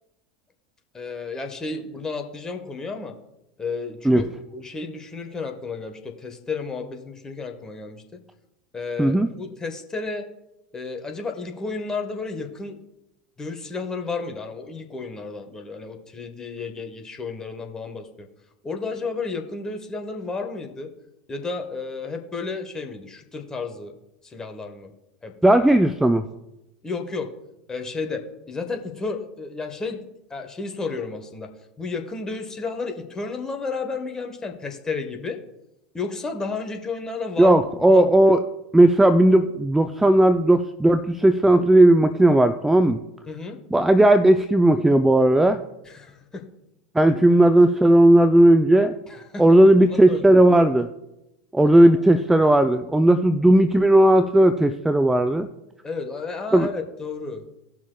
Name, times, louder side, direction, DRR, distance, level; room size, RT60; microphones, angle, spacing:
voice 1, 0.9-3.1 3.6-4.2 4.5-8.0 8.7-10.3 10.7-12.8 13.4-18.3 18.6-20.9 21.3-23.9 24.2-24.9 25.2-25.6 26.8-27.3 27.7-30.0 30.3-31.5 31.8-35.4 35.9-38.0 43.3-43.6 45.8-46.4 49.1-49.6 49.9-50.4 51.8-51.9 55.8-57.4, left 4 dB, 15° left, 4 dB, 1.3 m, -32 dB
voice 2, 9.0-9.3 25.4-26.3 37.4-38.4 38.7-43.0 43.7-45.6 46.9-48.9 49.4-50.9 51.5-55.5 56.5-56.7, right 1 dB, 5° right, 10 dB, 0.4 m, -16 dB
18.0 x 6.1 x 2.3 m, 0.91 s
figure-of-eight pair, 85°, 4 cm